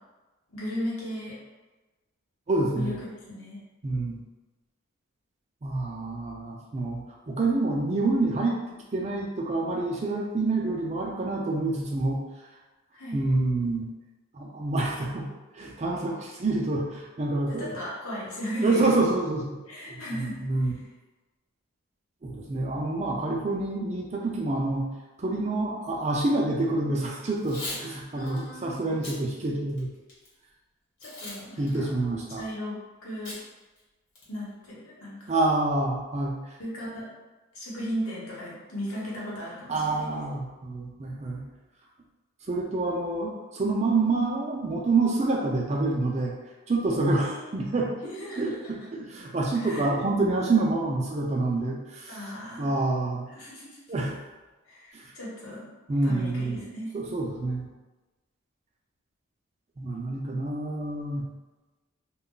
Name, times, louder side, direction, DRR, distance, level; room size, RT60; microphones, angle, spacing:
voice 1, 0.5-1.4 2.7-3.0 3.3-3.6 12.9-13.2 17.5-18.9 19.7-20.4 28.1-28.7 31.0-31.9 32.4-33.3 34.3-35.3 36.6-37.1 37.5-40.1 47.2-47.5 48.0-48.6 49.5-49.9 52.1-52.7 53.3-53.8 54.6-55.7 56.0-56.9, equal, 80° left, -6 dB, 1.0 m, -36 dB
voice 2, 2.5-2.9 3.8-4.2 5.6-7.0 7.3-8.6 8.9-12.2 13.1-13.9 14.3-15.3 15.5-17.8 18.6-19.6 19.9-20.7 22.2-24.9 25.2-29.9 31.6-32.4 35.3-36.4 39.7-41.4 42.5-46.3 46.7-47.9 48.4-52.2 52.6-53.3 53.9-54.1 54.9-55.1 55.9-56.6 56.9-57.7 59.8-61.2, right 2 dB, 30° right, -1 dB, 0.4 m, -27 dB
Packing tape duct tape / Tearing, 27.3-27.8 28.3-28.4 28.9-29.2 29.7-30.3 31.0-31.4 31.7-31.8 33.2-33.4 33.8-33.9 34.1-34.5, left 1 dB, 55° left, 1.0 m, -38 dB
2.3 x 2.1 x 3.7 m, 1.2 s
head